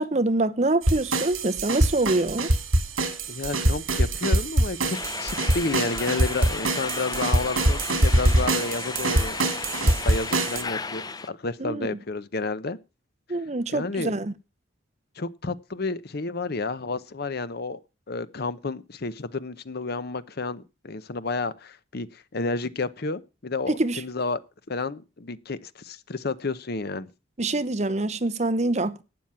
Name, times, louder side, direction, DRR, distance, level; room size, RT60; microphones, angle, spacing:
voice 1, 0.0-2.5 11.6-11.9 13.3-14.3 23.7-24.0 27.4-29.0, right 2 dB, 35° right, 0.9 m, -25 dB
sound 1, 0.8-10.6, right 1 dB, 75° right, 2.8 m, -24 dB
voice 2, 3.3-11.0 11.3-12.8 13.7-14.1 15.2-17.8 18.1-24.4 24.7-27.1, left 3 dB, 50° left, 0.8 m, -31 dB
sound 2, 4.9-11.3, left 4 dB, 20° left, 0.5 m, -34 dB
12.5 x 9.0 x 5.6 m
head